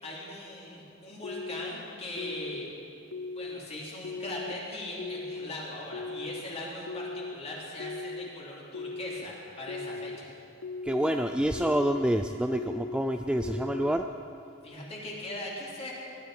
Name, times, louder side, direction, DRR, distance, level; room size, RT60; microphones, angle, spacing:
voice 1, 0.0-2.7 3.3-10.3 14.6-15.9, left 1 dB, 30° left, -4 dB, 3.4 m, -40 dB
sound 1, 1.2-1.7 2.2-2.7 3.1-3.6 4.0-4.5 5.0-5.5 5.9-6.4 6.9-7.3 7.8-8.3 8.7-9.2 9.7-10.2 10.6-11.1 11.5-12.0 12.5-13.0 13.4-13.9, left 3 dB, 90° left, 0.6 m, -38 dB
voice 2, 10.9-14.1, right 1 dB, 5° right, 6 dB, 0.3 m, -27 dB
19.5 x 12.5 x 5.0 m, 2.7 s
head